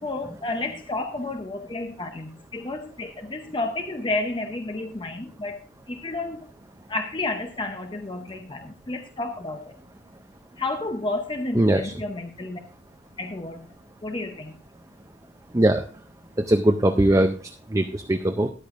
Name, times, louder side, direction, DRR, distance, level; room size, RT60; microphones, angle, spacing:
voice 1, 0.0-5.6 5.9-6.5 6.9-9.7 10.6-12.6 13.2-13.7 14.0-14.6, left 2 dB, 25° left, 5 dB, 0.7 m, -31 dB
voice 2, 11.6-11.9 15.5-15.9 16.4-17.3 17.7-18.5, right 1 dB, 15° right, 5 dB, 0.5 m, -20 dB
13.5 x 11.0 x 2.5 m, 0.38 s
head